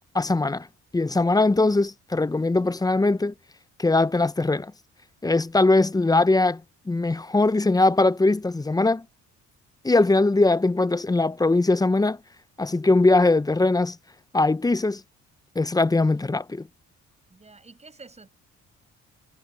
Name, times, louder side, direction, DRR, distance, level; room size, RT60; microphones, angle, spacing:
voice 1, 0.1-0.7 0.9-3.3 3.8-4.7 5.2-6.6 6.9-9.0 9.8-12.2 12.6-14.0 14.3-15.0 15.6-16.7, left 2 dB, 10° left, 0.6 m, -21 dB
voice 2, 17.3-18.3, right 3 dB, 20° right, 5.9 m, -48 dB
cardioid pair, 90°, 30 cm